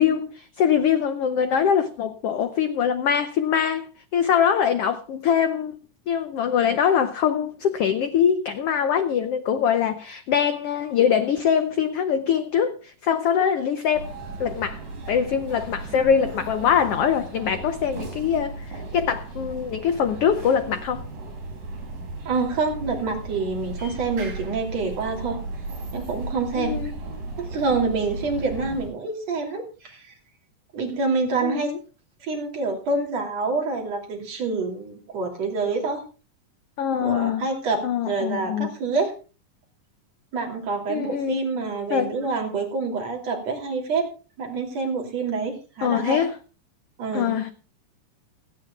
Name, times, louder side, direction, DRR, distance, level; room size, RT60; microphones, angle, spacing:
voice 1, 0.0-3.9 4.1-5.8 6.1-14.8 15.1-21.0 26.6-26.9 31.4-31.8 36.8-37.5 37.8-38.7 40.9-41.4 41.9-42.2 45.8-46.3 47.1-47.5, left 8 dB, 75° left, 1.3 m, -23 dB
sound 1, 13.9-28.9, right 2 dB, 70° right, 8.6 m, -36 dB
voice 2, 22.3-25.4 25.9-26.8 27.4-30.2 30.7-31.7 32.2-36.0 37.0-39.1 40.3-44.1 44.4-46.2 47.0-47.4, right 4 dB, 55° right, 4.0 m, -27 dB
28.5 x 9.8 x 2.4 m
omnidirectional pair, 3.7 m